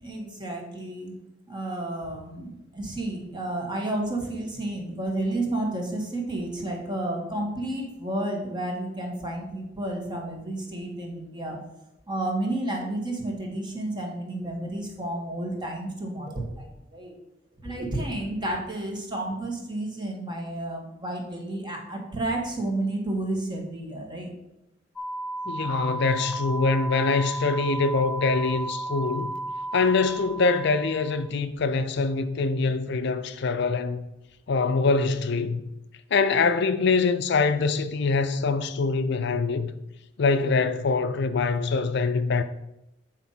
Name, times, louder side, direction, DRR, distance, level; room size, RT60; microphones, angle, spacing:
voice 1, 0.0-1.1 1.5-11.6 12.1-17.1 17.6-24.3, right 1 dB, 25° right, 1.5 m, -31 dB
sound 1, 25.0-31.3, right 2 dB, 5° left, 0.5 m, -34 dB
voice 2, 25.5-29.3 29.7-34.0 34.5-35.6 36.1-39.7 40.2-42.4, left 4 dB, 60° left, 0.5 m, -24 dB
8.3 x 4.3 x 5.6 m
head